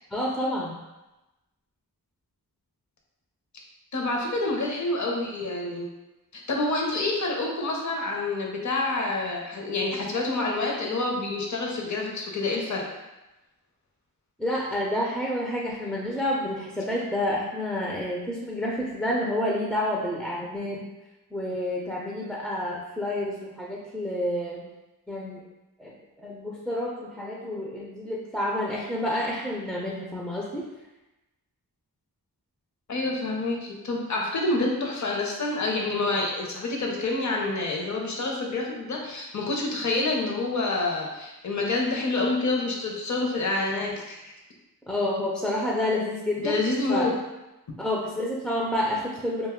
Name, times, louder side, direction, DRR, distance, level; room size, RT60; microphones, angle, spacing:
voice 1, 0.1-0.8 14.4-20.8 21.3-24.7 25.1-25.4 25.8-30.6 44.9-46.6 46.9-47.1 47.8-49.5, left 1 dB, 5° left, -4 dB, 0.4 m, -29 dB
voice 2, 3.9-5.9 6.3-12.9 32.9-44.3 46.4-47.1, left 2 dB, 50° left, 0 dB, 0.6 m, -27 dB
2.5 x 2.2 x 3.5 m, 1.0 s
wide cardioid pair, 65°, 38 cm